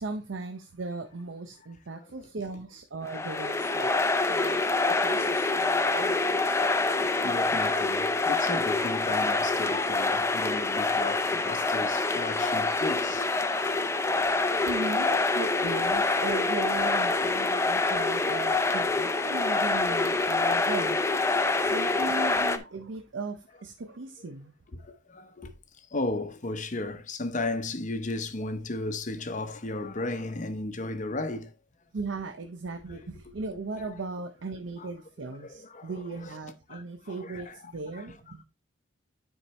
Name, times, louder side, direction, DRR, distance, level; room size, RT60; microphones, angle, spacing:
voice 1, 0.0-6.4 14.6-21.0 21.6-24.5 31.9-38.4, right 3 dB, 80° right, 0.7 m, -38 dB
sound 1, 3.1-22.6, left 3 dB, 15° left, 0.5 m, -26 dB
voice 2, 7.2-13.3 13.6-14.7 15.6-15.8 16.9-17.0 17.7-17.9 18.3-18.7 19.0-19.9 20.6-20.7 21.5-21.9 24.8-31.5 33.8-33.9 34.8-34.9 35.3-36.3 36.7-37.6 38.0-38.1, left 2 dB, 40° left, 0.8 m, -36 dB
9.9 x 4.5 x 3.2 m
head